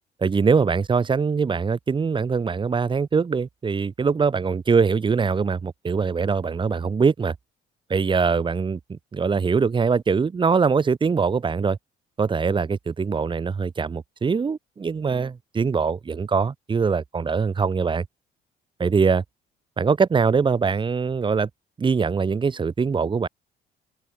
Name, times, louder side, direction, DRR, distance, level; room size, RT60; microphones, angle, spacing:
voice 1, 0.2-7.3 7.9-11.8 12.2-18.1 18.8-19.2 19.8-21.5 21.8-23.3, right 5 dB, 30° right, 2.8 m, -22 dB
open air
cardioid pair, 110°, 17 cm